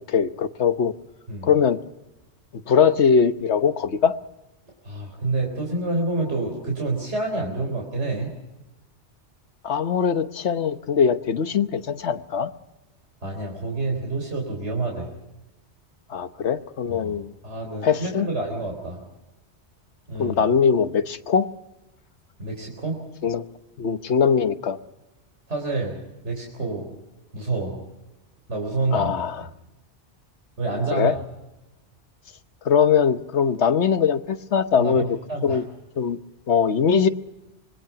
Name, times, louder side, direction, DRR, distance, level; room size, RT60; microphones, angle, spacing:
voice 1, 0.1-0.9 1.4-1.8 2.7-4.2 9.6-12.5 16.1-17.3 17.8-18.3 20.2-21.5 23.2-23.4 23.8-24.8 28.9-29.4 30.9-31.2 32.6-35.0 35.4-35.6 36.0-36.2 36.5-37.1, left 6 dB, 75° left, 11 dB, 1.3 m, -21 dB
voice 2, 4.8-8.3 13.2-15.1 16.9-17.1 17.4-19.0 20.1-20.4 22.4-23.0 25.5-25.9 26.2-26.9 27.3-27.7 28.5-29.2 30.6-31.1 34.8-35.6, right 2 dB, 80° right, 0 dB, 4.3 m, -28 dB
25.5 x 21.0 x 5.9 m, 0.99 s
omnidirectional pair, 1.2 m